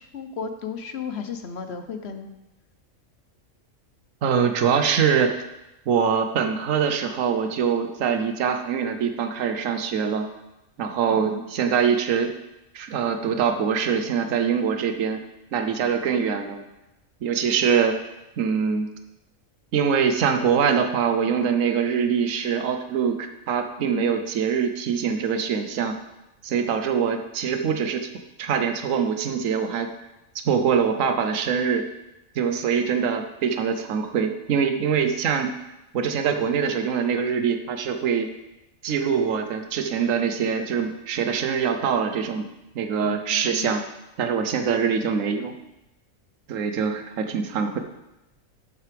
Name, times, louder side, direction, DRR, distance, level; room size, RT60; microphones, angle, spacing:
voice 1, 0.0-2.4 11.1-11.4 15.8-16.4 23.8-24.1 43.0-43.8, left 6 dB, 55° left, 7 dB, 0.9 m, -35 dB
voice 2, 4.2-5.3 5.9-10.3 10.8-12.3 12.7-15.2 15.5-16.6 17.2-18.0 18.4-18.9 19.7-26.0 26.4-28.1 28.4-29.9 30.3-31.9 32.3-35.5 35.9-38.3 38.8-42.5 42.7-43.8 44.2-45.5 46.5-47.8, right 7 dB, 75° right, 7 dB, 1.2 m, -23 dB
12.5 x 7.9 x 3.4 m, 0.95 s
omnidirectional pair, 1.4 m